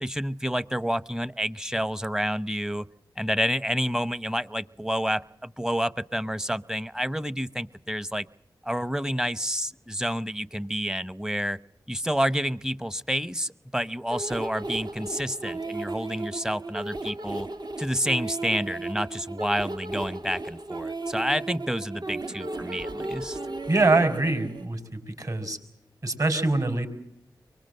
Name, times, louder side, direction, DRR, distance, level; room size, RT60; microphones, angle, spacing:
voice 1, 0.0-2.9 3.2-8.3 8.6-11.6 11.9-17.5 17.8-23.4, equal, 5° right, 17 dB, 0.8 m, -29 dB
sound 1, 14.1-24.6, right 2 dB, 60° right, 1.7 m, -35 dB
voice 2, 23.7-25.6 26.0-26.9, right 2 dB, 45° right, 7 dB, 4.9 m, -24 dB
24.0 x 20.5 x 7.7 m, 0.80 s
cardioid pair, 45°, 8 cm